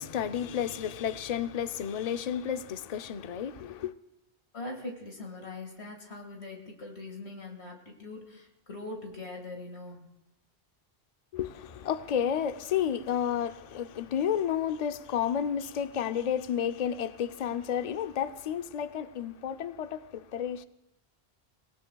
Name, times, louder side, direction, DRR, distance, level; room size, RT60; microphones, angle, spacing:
voice 1, 0.0-3.9 11.3-20.6, left 9 dB, 45° left, 0.6 m, -31 dB
voice 2, 4.5-10.0, left 2 dB, 80° left, 2.3 m, -42 dB
28.0 x 17.5 x 2.3 m
omnidirectional pair, 1.1 m